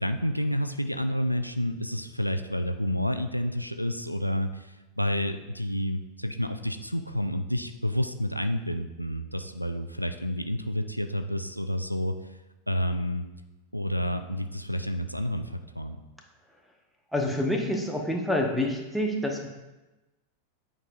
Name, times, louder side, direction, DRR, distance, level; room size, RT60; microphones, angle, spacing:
voice 1, 0.0-12.4 12.7-13.3 13.7-16.0, equal, 90° left, 8 dB, 0.3 m, -29 dB
voice 2, 17.1-19.5, left 1 dB, ahead, 0 dB, 0.9 m, -27 dB
8.9 x 5.3 x 2.5 m, 1.1 s
figure-of-eight pair, 90°, 0 cm